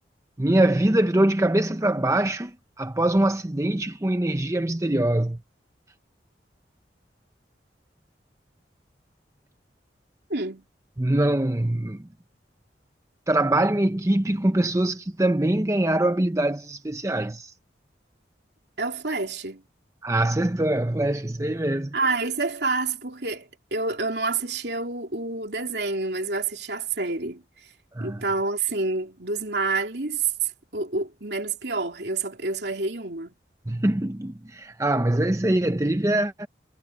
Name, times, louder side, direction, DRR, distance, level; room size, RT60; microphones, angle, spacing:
voice 1, 0.4-5.4 11.0-12.0 13.3-17.5 20.0-21.9 27.9-28.2 33.7-36.5, right 1 dB, 15° right, 0.7 m, -23 dB
voice 2, 10.3-10.6 18.8-19.6 21.9-27.4 28.0-33.3, right 3 dB, 65° right, 3.2 m, -28 dB
head